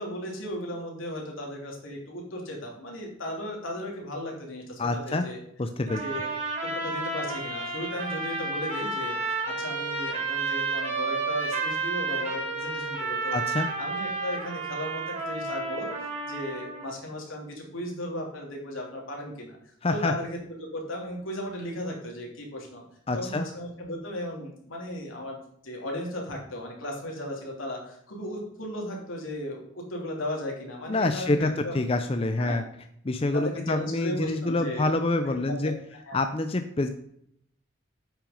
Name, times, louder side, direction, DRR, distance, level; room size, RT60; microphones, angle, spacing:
voice 1, 0.0-5.4 5.9-6.3 6.6-9.2 9.4-13.4 13.8-15.9 16.3-19.6 19.9-22.8 23.1-25.4 25.6-31.7 32.4-32.6 33.3-35.7 36.0-36.2, left 1 dB, 85° left, -1 dB, 3.1 m, -36 dB
voice 2, 4.8-5.2 5.6-6.0 13.3-13.7 19.8-20.1 23.1-23.4 30.9-32.6 33.1-35.7 36.1-36.9, left 2 dB, 30° left, 7 dB, 0.5 m, -26 dB
sound 1, 5.9-16.9, right 3 dB, 35° right, 3.1 m, -31 dB
8.6 x 6.1 x 5.2 m, 0.71 s
head